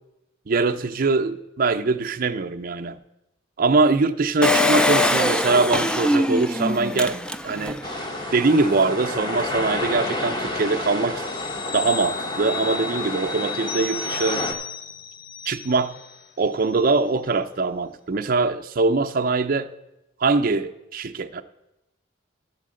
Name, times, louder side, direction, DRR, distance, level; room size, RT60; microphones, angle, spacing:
voice 1, 0.5-3.0 3.6-7.8 8.3-11.2 11.7-14.4 15.5-16.0 16.4-19.7 20.2-21.4, right 3 dB, 45° right, 6 dB, 0.5 m, -22 dB
Engine, 4.4-7.9 8.4-8.5 8.6-8.7, left 1 dB, 5° left, 0.3 m, -22 dB
sound 1, 7.8-14.5, left 1 dB, 25° left, 1.0 m, -30 dB
sound 2, 11.2-16.3 16.6-16.8, left 5 dB, 60° left, 0.8 m, -34 dB
12.0 x 4.6 x 7.5 m, 0.93 s
head